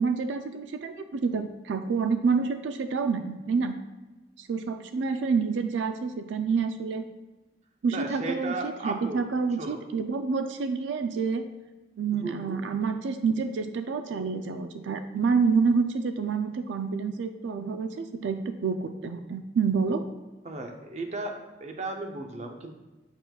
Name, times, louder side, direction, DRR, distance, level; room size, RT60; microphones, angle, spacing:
voice 1, 0.0-3.7 4.4-7.0 7.8-11.4 12.0-20.1, right 5 dB, 90° right, 8 dB, 0.4 m, -28 dB
voice 2, 7.9-9.2 9.6-9.8 12.1-12.6 20.4-22.7, right 2 dB, 40° right, 4 dB, 0.7 m, -35 dB
7.9 x 5.9 x 2.3 m, 1.1 s
head